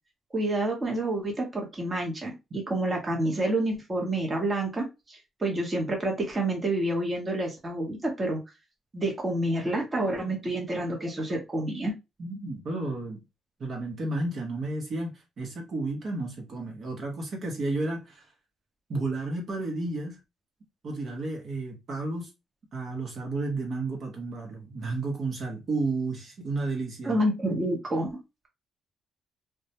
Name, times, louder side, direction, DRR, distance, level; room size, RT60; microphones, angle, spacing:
voice 1, 0.3-8.4 8.9-11.9 27.0-28.2, right 1 dB, 25° right, 0.9 m, -28 dB
voice 2, 12.2-13.2 13.6-18.3 18.9-20.2 20.8-22.3 22.7-27.2, right 2 dB, 55° right, 0.8 m, -32 dB
2.2 x 2.1 x 2.8 m
cardioid pair, 90°, 0 cm